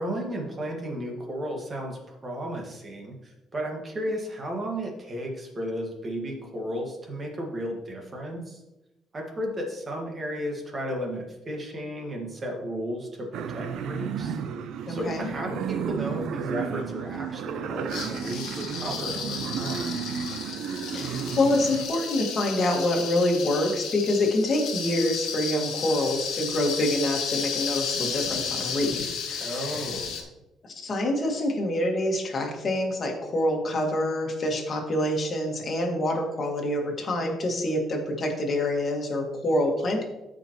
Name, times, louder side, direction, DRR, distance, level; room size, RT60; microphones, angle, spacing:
voice 1, 0.0-8.6 9.1-14.4 14.9-19.9 29.4-30.3, equal, 25° right, 0 dB, 1.7 m, -34 dB
sound 1, 13.3-21.9, right 7 dB, 70° right, 0.5 m, -33 dB
voice 2, 14.9-15.3 20.9-29.8 30.8-40.0, left 1 dB, 35° left, 1 dB, 1.8 m, -26 dB
sound 2, 17.9-30.2, left 6 dB, 75° left, 1.3 m, -33 dB
13.5 x 5.1 x 3.0 m, 0.97 s
cardioid pair, 140°, 0 cm